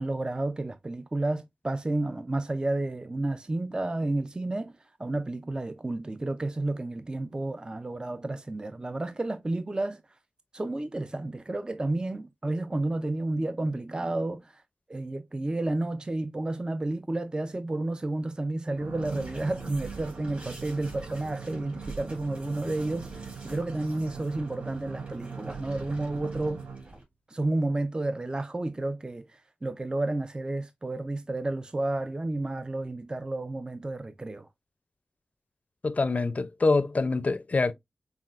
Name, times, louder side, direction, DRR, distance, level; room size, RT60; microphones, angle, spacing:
voice 1, 0.0-10.0 10.5-14.6 14.9-26.7 27.3-34.5, right 2 dB, 25° right, 0.4 m, -31 dB
sound 1, 18.8-27.0, right 5 dB, 85° right, 0.5 m, -42 dB
sound 2, 19.0-27.0, right 2 dB, 50° right, 2.6 m, -46 dB
voice 2, 35.8-37.7, left 3 dB, 50° left, 0.5 m, -25 dB
5.6 x 2.3 x 2.4 m
cardioid pair, 45°, 3 cm